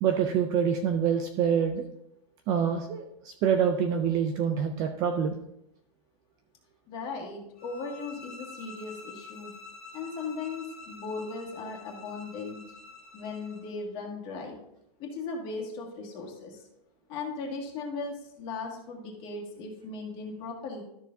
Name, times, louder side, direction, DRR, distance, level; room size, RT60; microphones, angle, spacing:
voice 1, 0.0-1.8 2.5-5.4, right 7 dB, 20° right, 5 dB, 0.4 m, -26 dB
voice 2, 6.9-9.5 9.9-12.6 13.1-14.6 15.0-16.6 17.1-20.8, left 4 dB, 30° left, -1 dB, 1.9 m, -37 dB
sound 1, 7.6-13.7, left 3 dB, 5° left, 2.2 m, -47 dB
13.0 x 6.7 x 2.6 m, 0.80 s
supercardioid pair, 170°, 19 cm